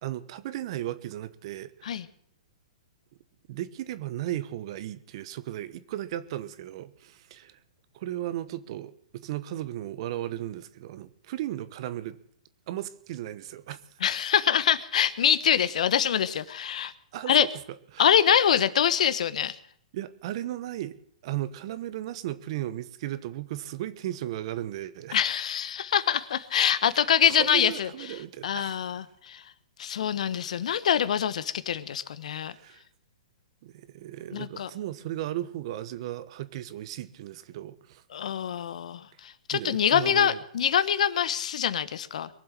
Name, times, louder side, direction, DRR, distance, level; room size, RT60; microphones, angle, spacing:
voice 1, 0.0-2.0 3.5-7.6 7.9-8.9 9.2-12.2 12.7-13.8 17.1-17.5 17.9-18.1 19.9-21.0 21.2-25.2 27.4-28.9 30.5-30.6 32.5-32.8 33.6-38.0 39.5-40.4, right 13 dB, 50° right, 1.1 m, -35 dB
voice 2, 14.0-16.9 17.3-17.5 18.0-19.5 25.1-27.9 28.4-29.4 29.8-32.5 34.3-34.7 38.1-42.3, left 9 dB, 70° left, 1.1 m, -25 dB
22.5 x 7.6 x 7.4 m
hypercardioid pair, 140°, 4 cm